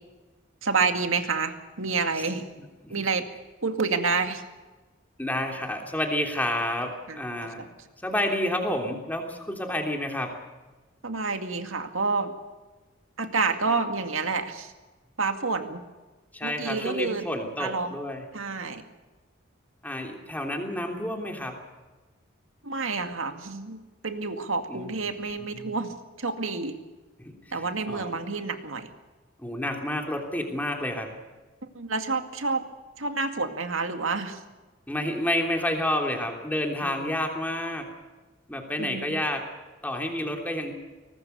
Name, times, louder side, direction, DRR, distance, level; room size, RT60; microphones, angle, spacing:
voice 1, 0.6-2.5 2.9-3.3 3.6-4.4 7.1-7.2 7.6-7.7 11.0-12.3 13.2-14.7 15.2-15.8 16.4-17.2 17.6-18.0 18.3-18.8 22.6-26.8 27.5-28.9 31.7-32.6 33.0-34.4 36.8-37.2 38.8-39.2, right 4 dB, 80° right, 7 dB, 2.1 m, -29 dB
voice 2, 2.6-3.0 5.2-7.6 8.0-10.3 16.3-18.2 19.8-21.5 24.7-24.9 25.5-25.7 27.2-28.2 29.4-31.1 34.9-37.9 38.5-39.4 39.8-40.7, left 1 dB, 10° left, 2 dB, 3.2 m, -30 dB
23.0 x 19.0 x 6.9 m, 1.2 s
head